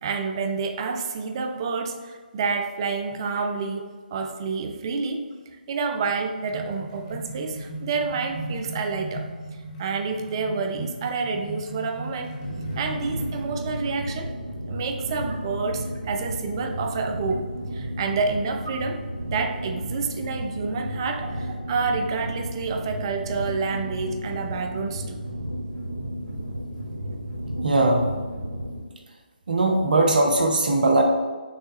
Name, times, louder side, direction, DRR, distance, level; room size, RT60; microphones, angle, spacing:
voice 1, 0.0-5.2 5.7-9.3 9.8-12.3 12.8-14.3 14.7-17.5 17.7-25.2, right 4 dB, 30° right, 6 dB, 0.3 m, -28 dB
sound 1, 6.0-13.5, right 1 dB, 25° left, 0.8 m, -37 dB
sound 2, 12.4-28.8, equal, 85° right, 1.0 m, -33 dB
voice 2, 27.6-28.1 29.5-31.0, right 2 dB, 60° right, 2 dB, 0.7 m, -20 dB
6.1 x 2.2 x 2.8 m, 1.4 s
figure-of-eight pair, 145°, 5 cm